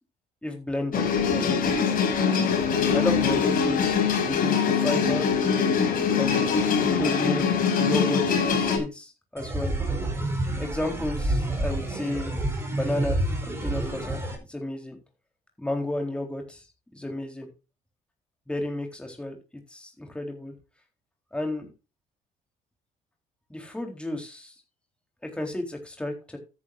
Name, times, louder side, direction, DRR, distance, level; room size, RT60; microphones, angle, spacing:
voice 1, 0.4-1.7 2.9-5.3 6.1-9.7 10.6-12.3 12.7-13.2 13.5-14.2 14.5-15.0 15.6-16.6 16.9-17.5 18.5-19.4 19.7-20.5 21.3-21.7 23.5-24.5 25.2-26.4, left 1 dB, 5° left, 2 dB, 3.8 m, -32 dB
sound 1, 0.9-8.8, left 6 dB, 55° left, 4.9 m, -23 dB
sound 2, 9.4-14.4, right 1 dB, 15° right, 4.5 m, -28 dB
13.5 x 10.0 x 2.6 m, 0.30 s
cardioid pair, 110°, 17 cm